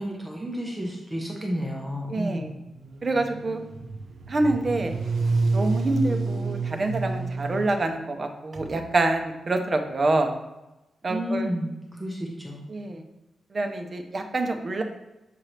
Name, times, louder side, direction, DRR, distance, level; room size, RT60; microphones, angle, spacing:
voice 1, 0.0-2.5 11.1-12.6, equal, 10° right, -1 dB, 1.0 m, -31 dB
voice 2, 2.1-2.5 3.0-3.6 4.3-4.9 5.5-10.3 11.0-11.5 12.7-13.0 13.5-14.8, right 2 dB, 35° right, 5 dB, 0.8 m, -26 dB
sound 1, 2.8-7.9, right 3 dB, 90° right, 0.8 m, -28 dB
7.6 x 4.6 x 3.3 m, 0.98 s
wide cardioid pair, 125°, 0 cm